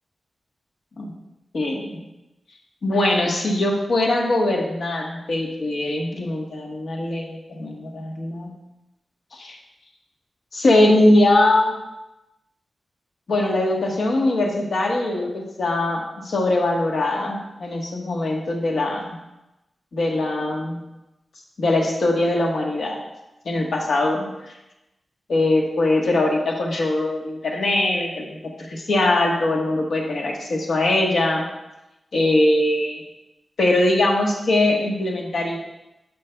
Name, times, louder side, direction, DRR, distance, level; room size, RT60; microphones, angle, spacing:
voice 1, 1.5-2.0 2.8-8.5 9.3-9.6 10.5-11.7 13.3-19.2 19.9-20.8 21.6-23.0 23.4-24.5 25.3-31.5 32.1-33.0 33.6-35.6, left 1 dB, 65° left, 0 dB, 1.2 m, -21 dB
11.5 x 5.6 x 2.3 m, 0.97 s
wide cardioid pair, 180°, 0 cm